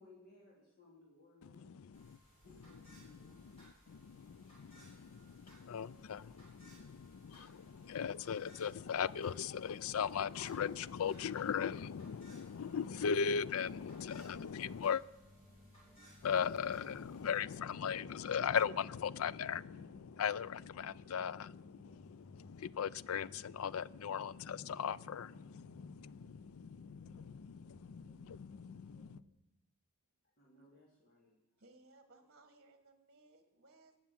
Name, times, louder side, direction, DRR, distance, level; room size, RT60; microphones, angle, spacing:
voice 1, 0.0-1.9 2.4-3.8 30.4-31.3, left 2 dB, 40° left, 3.2 m, -63 dB
voice 2, 1.4-2.2 3.0-15.0 16.2-29.2, left 7 dB, 75° left, 0.4 m, -39 dB
sound 1, 1.9-17.4, right 1 dB, 25° left, 6.9 m, -64 dB
sound 2, 14.6-29.3, equal, 10° right, 5.2 m, -62 dB
voice 3, 31.6-34.0, right 2 dB, 45° right, 1.4 m, -63 dB
19.0 x 7.3 x 7.3 m
head